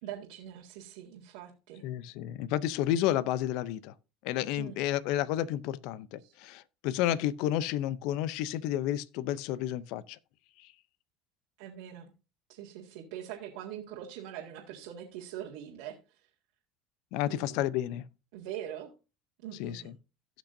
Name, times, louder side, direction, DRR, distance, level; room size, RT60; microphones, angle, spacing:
voice 1, 0.0-1.8 4.6-4.7 6.2-6.4 11.6-12.1 12.5-16.3 17.3-17.7 18.3-18.9 19.4-19.9, right 10 dB, 80° right, 2.0 m, -43 dB
voice 2, 1.8-3.9 4.2-10.2 10.6-10.7 17.1-18.0 19.6-19.9, left 12 dB, 70° left, 0.6 m, -31 dB
17.0 x 6.1 x 2.7 m
supercardioid pair, 105°, 0 cm